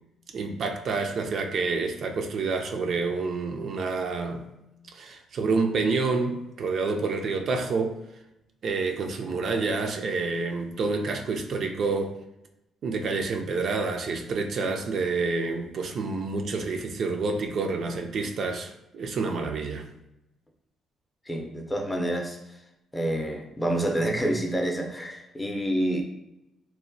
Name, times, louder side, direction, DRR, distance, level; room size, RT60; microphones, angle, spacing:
voice 1, 0.3-4.5 4.9-8.0 8.6-12.1 12.8-19.9, right 4 dB, 60° right, 0.3 m, -28 dB
voice 2, 21.3-22.4 22.9-26.0, right 1 dB, 15° left, 0.5 m, -28 dB
2.9 x 2.1 x 2.6 m
cardioid pair, 90°, 0 cm